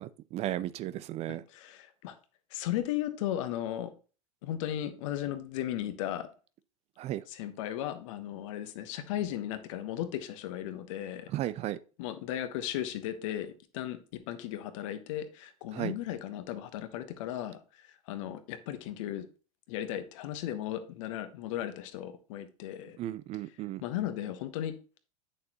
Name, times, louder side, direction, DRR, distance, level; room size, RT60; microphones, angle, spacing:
voice 1, 0.0-1.4 7.0-7.2 11.3-11.8 15.7-15.9 23.0-23.8, right 14 dB, 35° right, 0.4 m, -35 dB
voice 2, 1.3-2.1 2.5-3.9 4.4-6.3 7.3-11.3 12.0-17.6 18.1-19.3 19.7-23.0 23.8-25.0, left 12 dB, 60° left, 1.2 m, -36 dB
8.7 x 6.6 x 3.0 m
hypercardioid pair, 90°, 19 cm